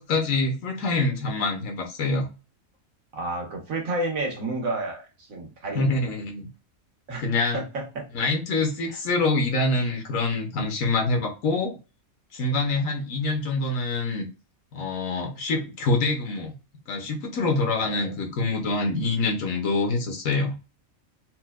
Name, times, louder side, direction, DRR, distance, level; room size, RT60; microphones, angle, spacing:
voice 1, 0.0-2.3 5.7-6.5 7.2-7.6 8.1-11.7 12.3-14.2 14.7-16.5 16.9-20.5, left 3 dB, 75° left, 2 dB, 1.2 m, -25 dB
voice 2, 3.1-6.0 7.1-7.2 7.5-8.0 8.9-9.0 17.8-18.2, right 2 dB, 80° right, 1 dB, 1.4 m, -31 dB
4.2 x 2.1 x 2.3 m, 0.31 s
omnidirectional pair, 1.4 m